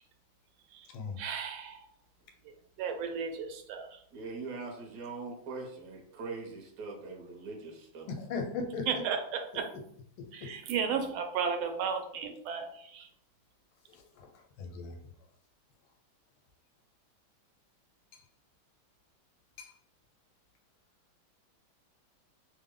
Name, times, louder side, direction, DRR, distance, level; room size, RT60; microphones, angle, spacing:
voice 1, 1.2-1.9 2.8-4.0 8.9-9.7 10.3-13.1, right 6 dB, 80° right, 5 dB, 1.4 m, -34 dB
voice 2, 4.1-8.1, right 3 dB, 60° right, 0 dB, 1.3 m, -42 dB
voice 3, 8.2-8.9 10.2-10.5 14.6-15.0 19.6-19.7, left 4 dB, 90° left, 3 dB, 1.5 m, -37 dB
3.4 x 2.1 x 3.6 m, 0.66 s
omnidirectional pair, 2.3 m